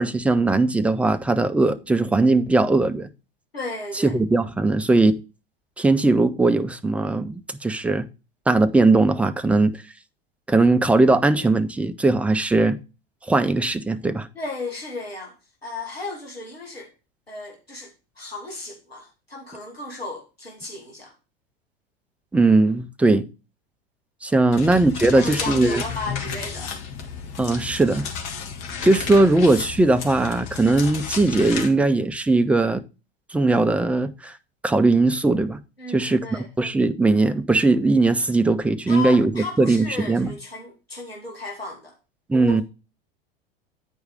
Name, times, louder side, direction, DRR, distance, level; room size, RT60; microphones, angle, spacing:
voice 1, 0.0-3.1 4.0-5.2 5.8-8.1 8.5-9.8 10.5-12.8 13.3-14.3 22.3-23.3 24.2-25.8 27.4-28.1 28.8-32.8 33.3-34.3 34.6-35.6 35.9-36.2 36.6-40.3 42.3-42.6, right 2 dB, 5° right, 0.5 m, -19 dB
voice 2, 3.5-4.1 14.3-15.3 15.6-16.9 17.3-17.9 18.2-21.1 25.1-26.8 35.8-36.5 38.9-42.0 42.3-42.6, left 2 dB, 85° left, 1.8 m, -34 dB
sound 1, 24.5-31.7, left 6 dB, 45° left, 1.9 m, -32 dB
9.8 x 4.8 x 4.8 m
figure-of-eight pair, 85°, 30 cm